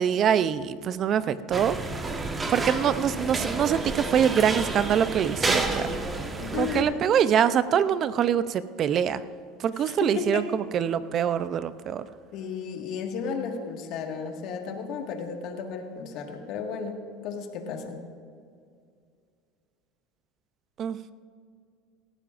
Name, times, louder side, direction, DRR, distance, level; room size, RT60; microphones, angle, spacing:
voice 1, 0.0-1.8 2.5-5.9 6.6-9.2 9.6-12.0 20.8-21.1, right 8 dB, 40° right, 14 dB, 0.5 m, -24 dB
sound 1, 1.5-6.8, right 3 dB, 20° right, 1.2 m, -30 dB
voice 2, 6.4-7.0 9.7-10.5 12.3-18.0, left 6 dB, 55° left, 3 dB, 1.7 m, -34 dB
18.5 x 15.0 x 2.6 m, 2.2 s
supercardioid pair, 120°, 0 cm